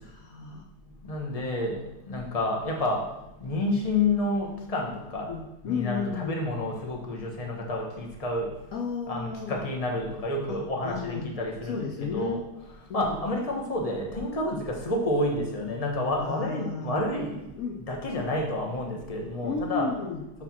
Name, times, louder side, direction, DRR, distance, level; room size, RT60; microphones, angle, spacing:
voice 1, 0.0-0.6 5.3-6.4 8.7-9.6 10.5-11.3 11.7-12.4 12.9-13.2 16.2-17.0 17.6-17.8 19.4-20.2, left 5 dB, 65° left, 1 dB, 1.1 m, -33 dB
voice 2, 1.0-1.8 2.1-3.1 3.4-5.3 5.6-8.5 9.1-12.4 12.9-17.4 17.9-19.9, left 2 dB, 25° left, 0 dB, 1.1 m, -29 dB
6.2 x 4.4 x 6.0 m, 0.92 s
omnidirectional pair, 1.7 m